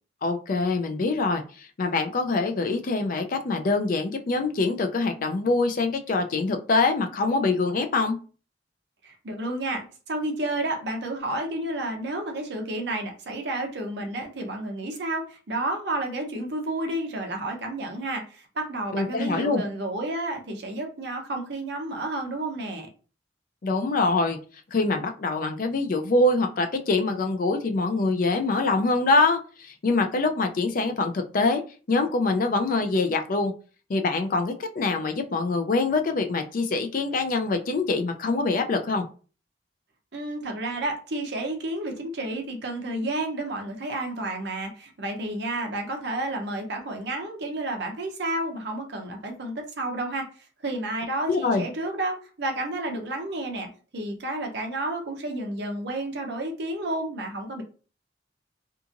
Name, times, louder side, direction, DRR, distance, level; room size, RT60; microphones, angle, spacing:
voice 1, 0.2-8.2 18.9-19.6 23.6-24.4 24.7-31.6 31.9-33.5 33.9-39.1 51.3-51.6, left 3 dB, 50° left, 5 dB, 0.4 m, -24 dB
voice 2, 9.0-22.9 40.1-50.3 50.6-53.7 53.9-57.6, right 1 dB, 65° right, 3 dB, 0.7 m, -31 dB
2.8 x 2.5 x 2.5 m, 0.37 s
head